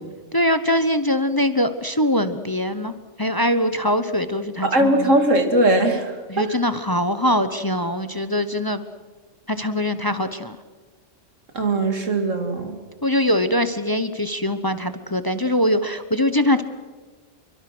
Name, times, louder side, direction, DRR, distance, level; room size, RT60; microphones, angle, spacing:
voice 1, 0.3-5.1 6.3-8.8 9.5-10.6 13.0-16.6, left 1 dB, 20° left, 11 dB, 0.9 m, -22 dB
voice 2, 4.6-6.6 11.5-12.8, right 1 dB, 90° right, 6 dB, 3.0 m, -20 dB
26.5 x 24.0 x 6.2 m, 1.3 s
omnidirectional pair, 1.3 m